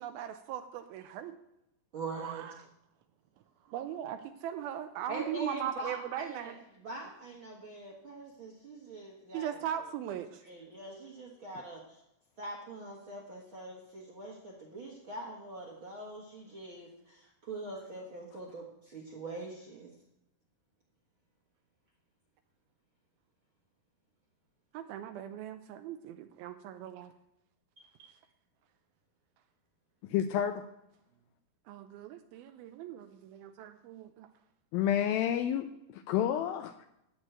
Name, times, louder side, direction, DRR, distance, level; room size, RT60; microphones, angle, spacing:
voice 1, 0.0-1.4 2.2-2.5 3.7-6.6 9.3-10.4 24.7-27.1 28.0-28.2 31.7-34.3, right 10 dB, 80° right, 9 dB, 2.3 m, -39 dB
voice 2, 1.9-2.4 5.1-9.9 10.4-12.0 12.4-19.9, right 2 dB, 55° right, -2 dB, 1.4 m, -43 dB
voice 3, 30.0-30.6 34.7-36.9, left 10 dB, 80° left, 8 dB, 2.1 m, -30 dB
14.0 x 4.8 x 8.9 m, 0.82 s
omnidirectional pair, 4.7 m